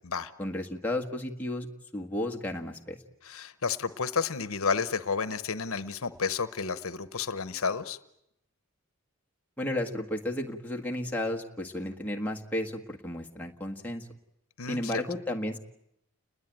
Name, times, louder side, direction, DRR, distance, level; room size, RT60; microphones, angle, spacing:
voice 1, 0.4-1.7 1.9-3.0 9.6-14.1 14.7-15.6, left 1 dB, 5° left, 0 dB, 1.6 m, -33 dB
voice 2, 3.2-8.0 14.6-15.0, left 5 dB, 70° left, 13 dB, 1.0 m, -31 dB
29.5 x 20.5 x 9.1 m, 0.81 s
head